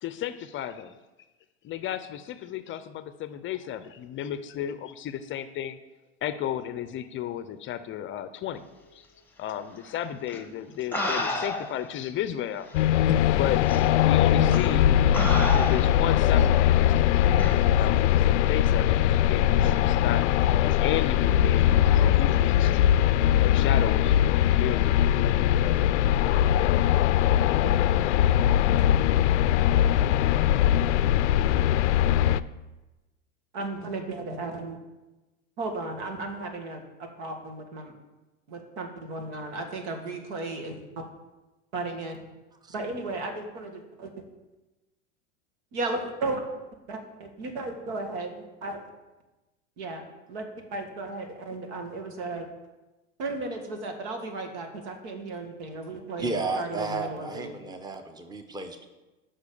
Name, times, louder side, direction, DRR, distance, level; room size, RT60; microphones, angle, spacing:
voice 1, 0.0-0.9 1.6-5.8 6.2-9.1 9.4-12.7 13.1-14.9 15.5-20.2 20.6-22.9 23.3-25.7, left 11 dB, 35° left, 12 dB, 0.6 m, -34 dB
sound 1, 10.3-10.4 10.9-11.9 12.7-12.8 13.7-13.9 14.5-14.7 15.1-16.1 17.4-17.6, left 2 dB, 5° left, 1.3 m, -30 dB
sound 2, 12.7-32.4, left 11 dB, 75° left, 0.5 m, -21 dB
voice 2, 33.5-34.8 35.6-36.8 37.2-37.9 38.5-41.0 41.7-42.2 42.7-44.1 45.7-46.4 46.9-48.3 48.6-48.8 49.8-50.0 50.3-52.5 53.2-57.5, right 2 dB, 70° right, 4 dB, 2.0 m, -35 dB
voice 3, 56.2-58.9, right 3 dB, 10° right, 7 dB, 1.0 m, -33 dB
8.1 x 5.7 x 7.0 m, 1.1 s
hypercardioid pair, 100°, 36 cm